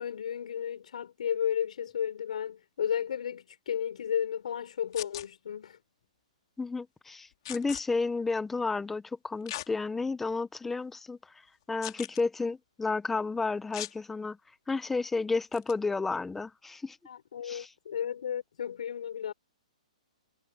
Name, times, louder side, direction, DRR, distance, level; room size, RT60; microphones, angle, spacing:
voice 1, 0.0-5.8 17.0-19.3, left 8 dB, 65° left, 6.3 m, -33 dB
sound 1, 4.9-5.3 7.5-7.8 9.5-9.7 10.3-10.4 11.8-12.2 13.7-14.0 15.5-15.7, left 15 dB, 40° left, 2.8 m, -39 dB
voice 2, 6.6-11.2 11.7-14.4 14.7-17.0 17.4-17.7, left 3 dB, 5° left, 0.8 m, -32 dB
hypercardioid pair, 165°, 4 cm